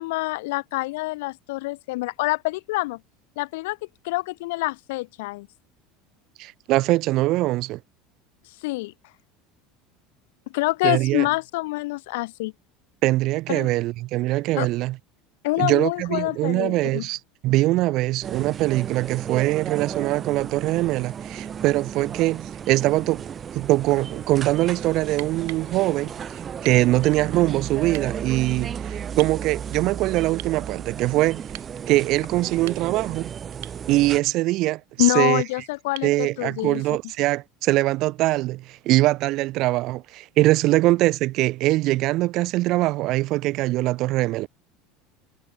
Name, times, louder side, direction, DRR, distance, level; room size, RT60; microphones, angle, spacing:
voice 1, 0.0-3.0 3.4-3.8 4.0-5.5 8.6-8.9 10.5-12.5 13.5-13.7 14.6-14.7 15.4-17.0 35.0-36.8, left 22 dB, 75° left, 1.6 m, -26 dB
voice 2, 6.4-7.8 10.8-11.3 13.0-15.0 15.6-23.3 23.5-26.2 26.6-31.4 31.9-33.3 33.9-35.4 36.0-44.5, right 18 dB, 40° right, 1.7 m, -22 dB
sound 1, 18.2-34.2, right 8 dB, 20° right, 1.5 m, -34 dB
sound 2, 25.2-25.7 26.6-26.9 27.9-28.1 29.2-29.4 30.4-30.6 31.5-31.7 32.5-33.1 33.6-33.8 36.0-36.2 38.0-38.1, right 24 dB, 70° right, 7.1 m, -41 dB
cardioid pair, 175°, 0 cm